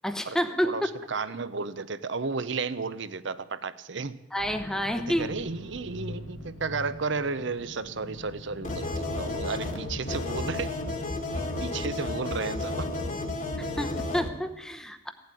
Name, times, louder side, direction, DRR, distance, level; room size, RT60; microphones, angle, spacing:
voice 1, 0.0-0.7 4.3-5.3 13.6-15.1, equal, 5° left, 8 dB, 0.9 m, -29 dB
voice 2, 1.1-4.2 4.9-10.7 11.3-12.9, right 4 dB, 60° right, 14 dB, 0.7 m, -33 dB
powering up, 4.4-14.0, left 2 dB, 80° left, 2.2 m, -44 dB
sound 1, 8.6-14.3, left 2 dB, 35° left, 1.5 m, -32 dB
16.5 x 7.9 x 9.8 m, 1.0 s
head